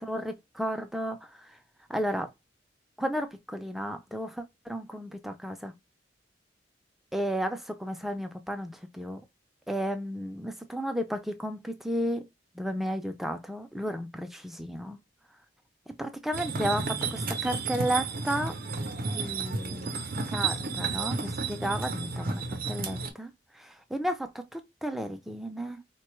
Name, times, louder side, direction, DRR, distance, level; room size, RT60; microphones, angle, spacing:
voice 1, 0.0-1.6 1.9-2.3 3.0-5.7 7.1-9.2 9.7-12.2 12.5-15.0 16.0-18.5 19.0-25.8, equal, ahead, 0.4 m, -33 dB
sound 1, 16.3-23.1, right 4 dB, 50° right, 0.6 m, -32 dB
4.0 x 2.2 x 3.0 m
head